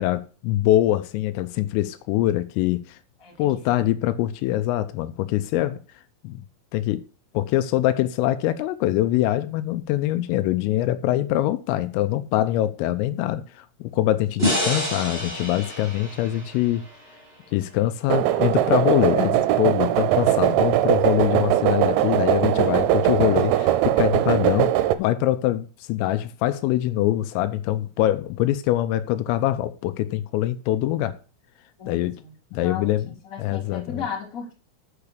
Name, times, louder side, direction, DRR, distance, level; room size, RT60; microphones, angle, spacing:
voice 1, 0.0-3.0 3.4-5.8 6.2-6.4 6.7-7.0 7.3-16.9 17.5-24.7 25.0-31.2 31.9-32.2 32.5-33.1 33.4-34.1, left 14 dB, 85° left, 3.2 m, -23 dB
voice 2, 3.2-3.9 21.0-21.1 31.8-32.9 33.2-34.5, left 6 dB, 25° left, 2.2 m, -36 dB
sound 1, 14.4-17.6, equal, 15° right, 2.3 m, -28 dB
sound 2, 18.1-25.0, right 13 dB, 80° right, 2.8 m, -20 dB
8.4 x 6.0 x 6.6 m
omnidirectional pair, 5.9 m